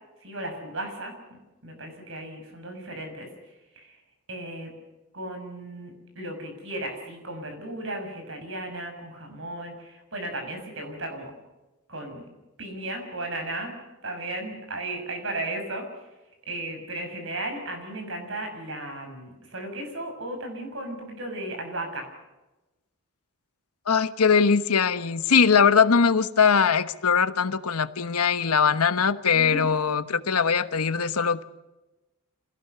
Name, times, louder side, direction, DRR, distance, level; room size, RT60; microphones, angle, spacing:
voice 1, 0.2-1.1 1.6-3.3 3.7-4.0 4.3-4.7 5.1-11.3 11.9-12.3 12.6-13.7 14.0-15.9 16.5-22.1 29.3-29.7, right 1 dB, 55° right, 5 dB, 6.4 m, -35 dB
voice 2, 23.9-31.4, left 6 dB, 90° left, 12 dB, 1.1 m, -21 dB
26.5 x 17.5 x 6.8 m, 1.1 s
head